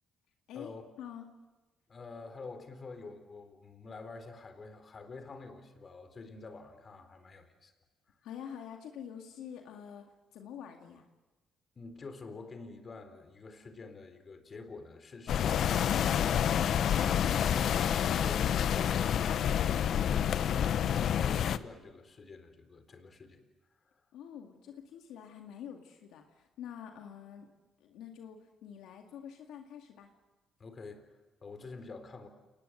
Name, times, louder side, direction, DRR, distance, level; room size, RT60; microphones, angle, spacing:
voice 1, 1.9-7.7 11.8-17.7 18.1-19.7 20.0-23.4 23.9-24.0 30.6-32.3, left 3 dB, 40° left, 8 dB, 3.9 m, -48 dB
voice 2, 8.2-10.1 10.3-11.0 24.1-27.5 27.8-30.1, left 9 dB, 90° left, 3 dB, 2.1 m, -46 dB
sound 1, 15.3-21.6, left 9 dB, 65° left, 0.8 m, -28 dB
29.0 x 19.5 x 7.9 m, 1.1 s
cardioid pair, 90°, 0 cm